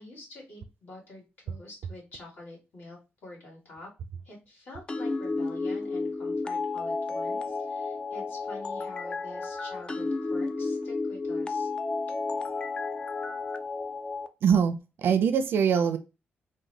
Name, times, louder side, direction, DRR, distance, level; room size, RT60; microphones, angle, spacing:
voice 1, 0.0-3.9 4.2-11.7, left 2 dB, 55° left, -2 dB, 2.0 m, -47 dB
sound 1, 4.9-14.3, left 3 dB, 25° left, 0.3 m, -32 dB
voice 2, 14.4-16.0, right 7 dB, 75° right, 11 dB, 0.5 m, -23 dB
3.6 x 2.2 x 3.3 m, 0.27 s
wide cardioid pair, 135°, 4 cm